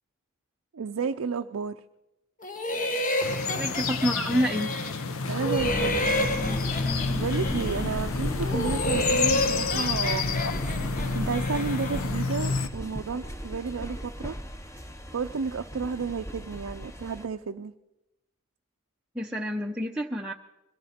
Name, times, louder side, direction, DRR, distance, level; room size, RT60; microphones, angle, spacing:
voice 1, 0.7-1.7 5.3-6.1 7.1-10.5 11.1-14.4 15.1-17.7, right 5 dB, 80° right, 5 dB, 0.5 m, -32 dB
sound 1, 2.4-5.1 5.4-8.0 8.4-12.2, left 1 dB, 40° left, 1.2 m, -30 dB
sound 2, 3.2-12.7, left 4 dB, 75° left, 0.8 m, -30 dB
voice 2, 3.6-4.8 19.1-20.3, equal, 5° right, -1 dB, 0.6 m, -28 dB
sound 3, 5.6-17.3, equal, 15° left, 1.0 m, -36 dB
22.0 x 15.0 x 4.3 m, 0.95 s
head